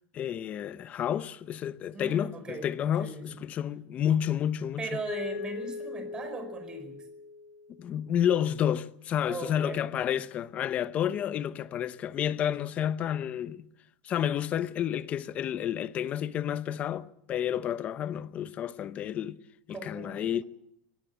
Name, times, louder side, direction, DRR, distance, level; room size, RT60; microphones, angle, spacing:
voice 1, 0.1-4.9 7.8-13.7 14.0-19.4 19.7-20.4, left 10 dB, 25° left, 0.8 m, -30 dB
voice 2, 1.9-2.7 3.0-3.3 4.8-6.9 9.3-10.2 19.7-20.4, right 3 dB, 15° right, 4.7 m, -39 dB
Mallet percussion, 5.1-8.0, left 4 dB, 80° left, 6.8 m, -40 dB
21.5 x 17.0 x 8.0 m
supercardioid pair, 165°, 5 cm